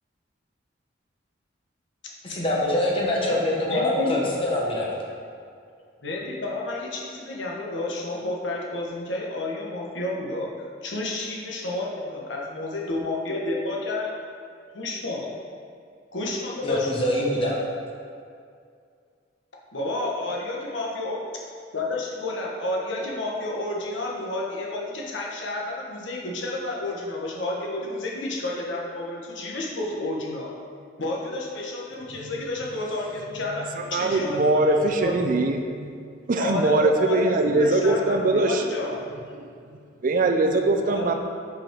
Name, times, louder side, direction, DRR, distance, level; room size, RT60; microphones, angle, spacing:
voice 1, 2.2-4.9 16.6-17.6, left 1 dB, 30° left, -3 dB, 1.1 m, -24 dB
voice 2, 3.7-4.2 6.0-14.1 14.7-15.3 16.1-16.9 19.7-21.2 21.7-30.5 31.0-35.4 36.4-39.0 40.8-41.1, left 2 dB, 75° left, -2 dB, 1.1 m, -31 dB
voice 3, 33.9-35.9 36.3-38.6 39.4-39.5 40.0-41.1, right 2 dB, 45° right, 5 dB, 0.5 m, -22 dB
5.6 x 5.4 x 4.5 m, 2.3 s
head